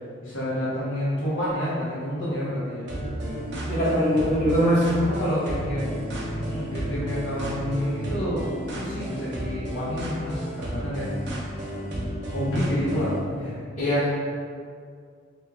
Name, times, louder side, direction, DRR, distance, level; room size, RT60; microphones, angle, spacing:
voice 1, 0.2-3.5 4.0-4.7 5.0-6.0 6.3-11.1 12.3-13.6, equal, 80° left, -8 dB, 1.1 m, -29 dB
sound 1, 2.9-13.2, equal, 65° right, 0.8 m, -32 dB
voice 2, 3.7-4.8 13.8-14.1, equal, 40° left, -14 dB, 1.4 m, -21 dB
3.5 x 3.2 x 3.3 m, 2.1 s
head